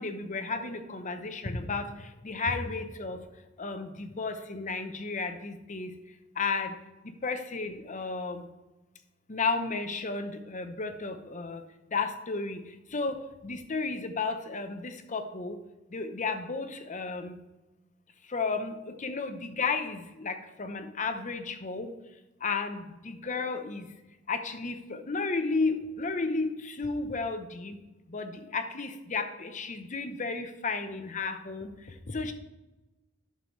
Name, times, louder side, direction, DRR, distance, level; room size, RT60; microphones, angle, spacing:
voice 1, 0.0-3.2 3.6-5.9 6.4-6.7 7.0-8.4 9.3-11.6 11.9-12.6 12.9-15.6 15.9-17.4 18.3-21.9 22.4-23.9 24.3-27.8 28.1-31.7 32.1-32.3, left 4 dB, 40° left, 8 dB, 0.8 m, -33 dB
11.0 x 6.9 x 3.2 m, 1.0 s
head